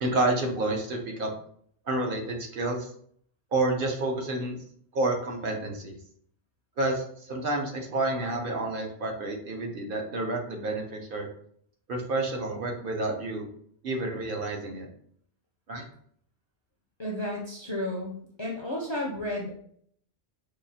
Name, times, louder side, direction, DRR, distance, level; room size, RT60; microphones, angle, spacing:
voice 1, 0.0-1.3 1.9-2.9 3.5-4.6 4.9-6.0 6.8-11.3 11.9-13.5 13.8-14.9 15.7-15.8, right 2 dB, 55° right, 1 dB, 0.8 m, -29 dB
voice 2, 17.0-19.5, left 1 dB, 35° left, -3 dB, 0.5 m, -32 dB
4.7 x 2.4 x 2.7 m, 0.63 s
omnidirectional pair, 1.1 m